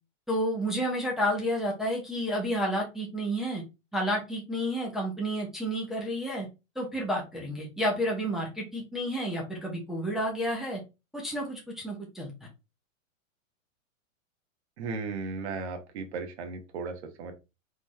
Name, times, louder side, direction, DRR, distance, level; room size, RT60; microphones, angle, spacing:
voice 1, 0.3-3.6 3.9-6.5 6.8-10.8 11.1-12.3, equal, ahead, -3 dB, 0.9 m, -30 dB
voice 2, 14.8-17.3, right 4 dB, 55° right, 5 dB, 1.6 m, -36 dB
4.1 x 3.8 x 3.1 m, 0.26 s
hypercardioid pair, 155°, 40 cm